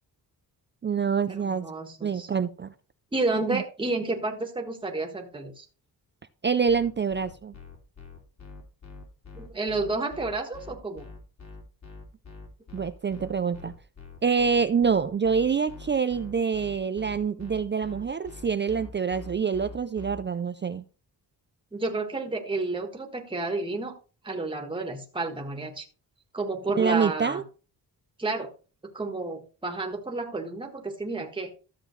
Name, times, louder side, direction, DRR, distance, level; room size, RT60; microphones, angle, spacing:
voice 1, 0.8-1.7 2.0-2.7 3.5-3.6 6.4-7.5 12.7-13.7 14.2-20.8 26.8-27.4, right 6 dB, 30° right, 11 dB, 0.4 m, -26 dB
voice 2, 1.4-2.3 3.1-5.6 9.3-11.0 21.7-23.9 24.2-25.8 26.3-27.4 28.2-28.5 28.9-31.7, right 3 dB, 10° right, 3 dB, 1.5 m, -31 dB
sound 1, 6.7-20.2, left 4 dB, 45° left, 2.8 m, -44 dB
13.0 x 7.3 x 3.2 m, 0.35 s
wide cardioid pair, 145°, 40 cm